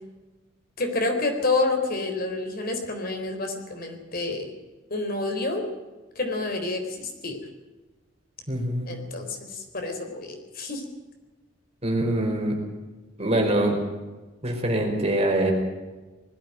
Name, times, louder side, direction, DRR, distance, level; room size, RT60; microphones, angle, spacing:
voice 1, 0.8-4.5 4.9-5.6 6.2-7.4 8.9-10.8, left 3 dB, 50° left, 4 dB, 4.0 m, -28 dB
voice 2, 8.5-8.9 11.8-12.6 13.2-13.8 14.4-15.5, right 1 dB, 30° right, 2 dB, 5.0 m, -24 dB
20.5 x 14.5 x 9.1 m, 1.2 s
head